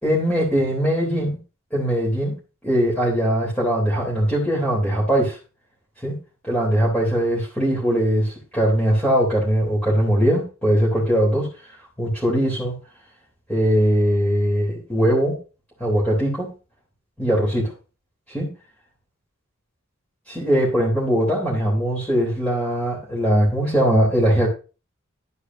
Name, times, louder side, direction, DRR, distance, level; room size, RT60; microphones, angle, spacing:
voice 1, 0.0-1.4 1.7-2.4 2.6-5.4 6.0-6.2 6.4-12.7 13.5-15.4 15.8-16.5 17.2-17.7 18.3-18.5 20.3-24.5, equal, 5° left, -5 dB, 3.4 m, -20 dB
11.5 x 9.6 x 2.7 m, 0.32 s
head